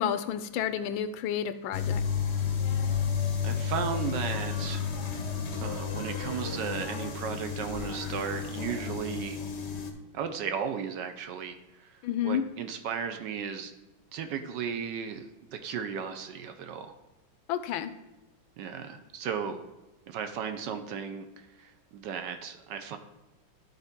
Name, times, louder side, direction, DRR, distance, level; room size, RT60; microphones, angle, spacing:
voice 1, 0.0-2.0 12.0-12.4 17.5-17.9, left 9 dB, 85° left, 12 dB, 1.4 m, -30 dB
sound 1, 1.7-9.9, left 7 dB, 55° left, 0.8 m, -32 dB
voice 2, 3.4-4.8 5.6-9.4 10.1-13.7 14.1-16.9 18.6-19.6 20.1-23.0, right 7 dB, 70° right, 7 dB, 1.2 m, -35 dB
12.0 x 4.2 x 3.6 m, 1.0 s
omnidirectional pair, 2.1 m